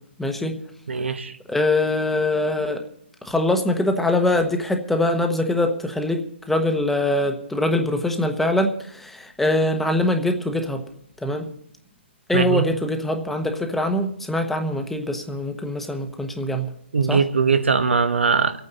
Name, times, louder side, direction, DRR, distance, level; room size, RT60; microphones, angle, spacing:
voice 1, 0.2-0.6 1.5-2.8 3.2-10.8 11.2-11.5 12.3-16.7 17.1-17.2, left 1 dB, 5° left, 5 dB, 1.0 m, -23 dB
voice 2, 0.9-1.3 12.3-12.6 16.9-18.6, right 5 dB, 80° right, 10 dB, 1.2 m, -20 dB
27.0 x 9.0 x 4.0 m, 0.67 s
hypercardioid pair, 145°, 6 cm